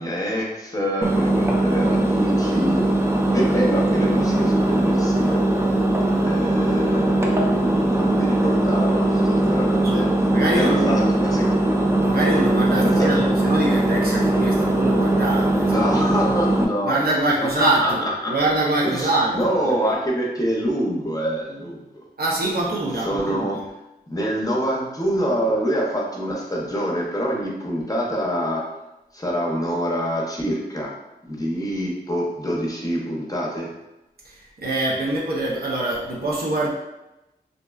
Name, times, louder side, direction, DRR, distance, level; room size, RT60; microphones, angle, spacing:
voice 1, 0.0-5.4 6.2-11.5 12.7-13.2 15.5-18.3 18.8-22.0 23.0-23.6 24.1-28.7 29.1-30.9 31.3-33.7, equal, 20° left, -2 dB, 0.7 m, -26 dB
Engine, 1.0-16.7, right 1 dB, 15° right, 0.4 m, -20 dB
voice 2, 10.3-10.9 12.0-16.0 16.8-19.7 22.2-23.6 34.2-36.7, right 2 dB, 65° right, -5 dB, 0.6 m, -24 dB
2.6 x 2.1 x 2.3 m, 0.96 s
cardioid pair, 45°, 17 cm